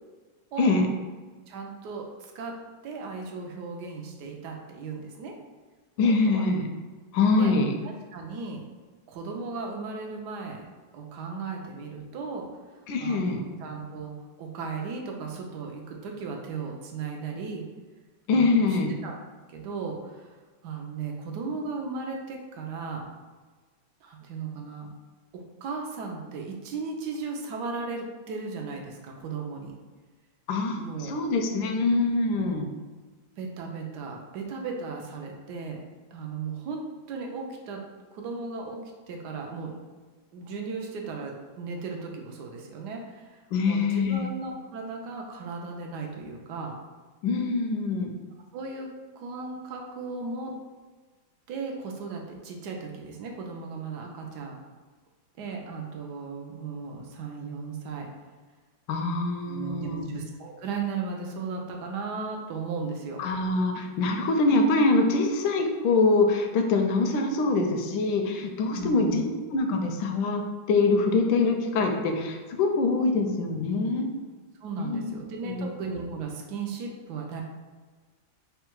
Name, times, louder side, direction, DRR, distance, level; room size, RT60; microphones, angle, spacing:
voice 1, 1.5-2.5 2.8-5.3 6.0-6.4 7.3-7.5 8.1-8.6 9.1-10.6 10.9-12.5 13.0-17.7 18.3-18.8 19.0-19.1 19.5-20.3 20.6-23.0 24.0-24.9 25.3-29.7 30.8-31.2 33.4-35.8 36.1-36.8 37.1-37.8 38.1-38.8 39.1-39.8 40.3-46.7 48.5-48.9 49.2-50.5 51.5-54.5 55.4-58.1 59.5-63.2 68.7-69.2 74.6-77.4, right 4 dB, 70° right, 1 dB, 1.1 m, -36 dB
voice 2, 6.0-6.7 7.1-7.7 12.9-13.4 18.3-18.9 30.5-32.7 43.5-44.2 47.2-48.1 58.9-60.1 63.2-74.1 74.8-75.2 75.4-75.7, left 3 dB, 85° left, 4 dB, 1.3 m, -24 dB
3.7 x 2.2 x 4.4 m, 1.4 s
omnidirectional pair, 2.0 m